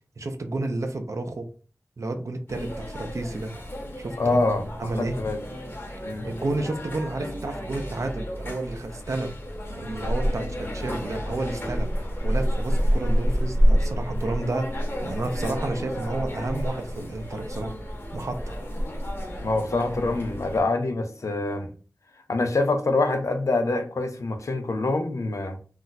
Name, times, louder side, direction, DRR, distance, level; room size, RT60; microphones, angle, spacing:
voice 1, 0.2-1.5 2.0-3.5 4.0-4.4 4.8-5.2 6.2-9.3 9.8-11.9 12.2-17.7 18.1-18.6, right 2 dB, 75° right, 0.4 m, -31 dB
sound 1, 2.5-20.6, equal, 45° left, 0.8 m, -29 dB
voice 2, 4.2-4.7 5.0-5.4 6.0-6.3 19.4-21.7 22.3-25.6, left 2 dB, 80° left, 0.5 m, -25 dB
2.4 x 2.1 x 3.9 m
wide cardioid pair, 65°, 5 cm